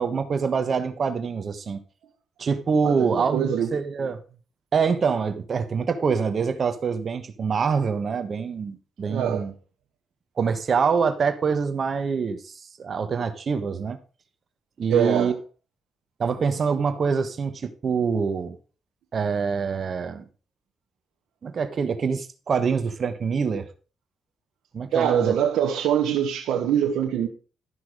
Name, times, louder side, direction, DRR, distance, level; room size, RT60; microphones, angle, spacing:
voice 1, 0.0-1.8 2.4-4.2 4.7-9.5 10.4-14.0 14.8-15.3 16.2-18.6 19.1-20.2 21.4-23.7 24.7-25.3, right 5 dB, 50° right, 1.3 m, -25 dB
voice 2, 2.8-3.7 9.1-9.5 14.9-15.3 24.9-27.3, right 9 dB, 90° right, 1.2 m, -23 dB
13.0 x 6.0 x 4.9 m
cardioid pair, 80°, 0 cm